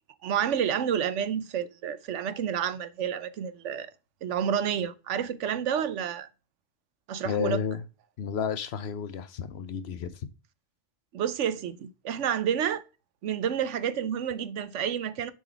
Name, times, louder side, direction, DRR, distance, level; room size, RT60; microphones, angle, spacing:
voice 1, 0.2-3.9 4.2-6.3 7.1-7.6 11.1-12.8 13.2-15.3, right 8 dB, 85° right, 1.0 m, -29 dB
voice 2, 7.2-7.8 8.2-10.2, left 7 dB, 65° left, 0.9 m, -31 dB
7.0 x 4.0 x 4.5 m
omnidirectional pair, 1.2 m